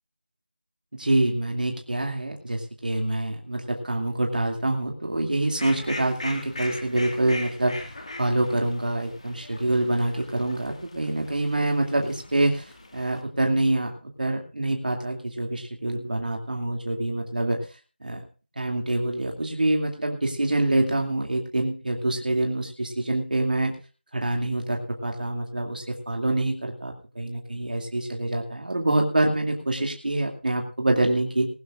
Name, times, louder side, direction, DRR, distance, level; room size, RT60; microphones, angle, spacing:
voice 1, 1.0-7.8 8.2-17.7 18.0-18.2 18.6-23.7 24.1-31.5, right 1 dB, 50° right, 2 dB, 2.5 m, -26 dB
Fowl, 5.4-13.2, left 2 dB, 35° left, 1.9 m, -40 dB
21.0 x 12.5 x 2.5 m, 0.34 s
figure-of-eight pair, 175°, 6 cm